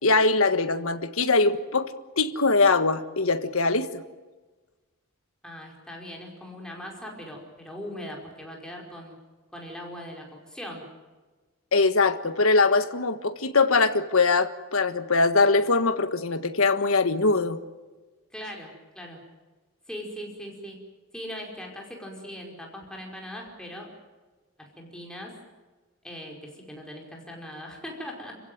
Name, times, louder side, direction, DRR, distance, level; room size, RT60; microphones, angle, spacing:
voice 1, 0.0-4.0 11.7-17.6, left 3 dB, 70° left, 9 dB, 1.6 m, -22 dB
voice 2, 5.4-9.2 9.5-10.9 18.3-19.2 19.9-20.8 21.1-23.9 24.6-25.4 26.0-28.4, equal, 5° left, 0 dB, 5.1 m, -40 dB
30.0 x 16.0 x 9.4 m, 1.3 s
head